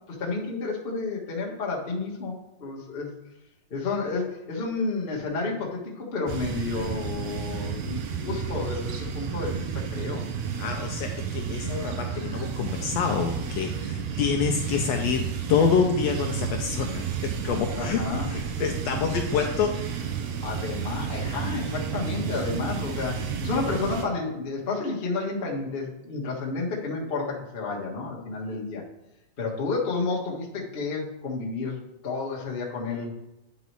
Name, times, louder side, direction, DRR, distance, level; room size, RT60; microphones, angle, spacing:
voice 1, 0.1-3.1 3.7-10.2 17.8-18.3 20.4-28.8 29.4-33.1, left 3 dB, 45° left, -3 dB, 0.7 m, -31 dB
sound 1, 6.3-24.1, right 7 dB, 75° right, 2.0 m, -31 dB
voice 2, 10.6-20.0, left 6 dB, 80° left, 4 dB, 1.5 m, -27 dB
9.5 x 4.1 x 4.6 m, 0.92 s
omnidirectional pair, 3.4 m